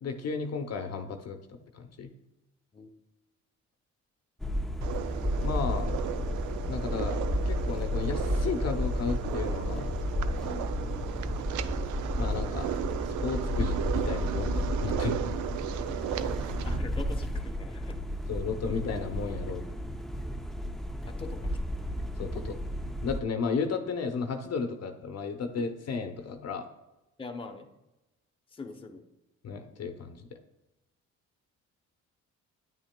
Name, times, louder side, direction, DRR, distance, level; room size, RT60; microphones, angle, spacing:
voice 1, 0.0-2.1 5.4-6.0 6.7-7.2 7.5-9.9 12.2-12.7 13.1-15.4 18.3-19.6 22.2-22.5 23.0-26.7 29.4-30.3, left 5 dB, 55° left, 6 dB, 0.8 m, -34 dB
sound 1, 4.4-23.2, left 1 dB, ahead, 0.4 m, -32 dB
sound 2, 4.8-16.8, right 11 dB, 75° right, 0.5 m, -36 dB
voice 2, 16.6-18.0 18.7-18.8 21.0-21.6 27.2-27.7 28.5-29.0, left 3 dB, 15° left, 3 dB, 0.8 m, -42 dB
9.2 x 9.0 x 2.2 m, 0.97 s
cardioid pair, 90°, 30 cm